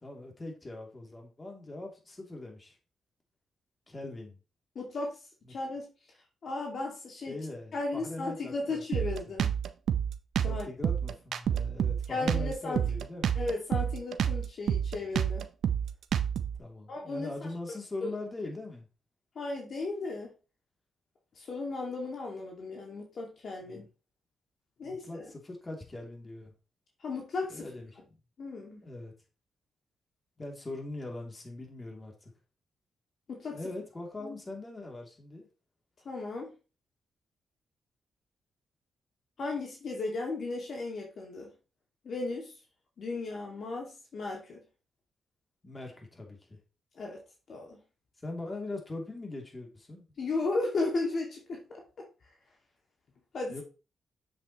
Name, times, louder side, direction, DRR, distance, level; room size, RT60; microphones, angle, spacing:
voice 1, 0.0-2.8 3.9-4.4 5.5-5.6 7.3-9.1 10.5-13.3 16.6-18.9 23.6-23.8 24.8-26.5 27.5-27.9 28.8-29.1 30.4-32.3 33.5-35.5 45.6-46.6 48.2-50.0 53.5-53.6, left 2 dB, 30° left, 1 dB, 2.8 m, -41 dB
voice 2, 4.8-5.2 5.5-5.9 6.4-7.4 7.7-9.5 10.4-10.7 12.1-12.8 13.4-15.4 16.9-17.3 18.0-18.1 19.4-20.3 21.4-23.8 24.8-25.3 27.0-27.7 28.4-28.8 33.3-33.6 34.2-34.3 36.0-36.5 39.4-41.5 42.0-42.5 43.0-44.6 47.0-47.2 47.5-47.8 50.2-52.0 53.3-53.6, left 3 dB, 65° left, 0 dB, 2.1 m, -35 dB
Drum kit, 8.9-16.6, right 8 dB, 75° right, 0.6 m, -29 dB
7.5 x 7.2 x 3.0 m, 0.32 s
cardioid pair, 60°, 0 cm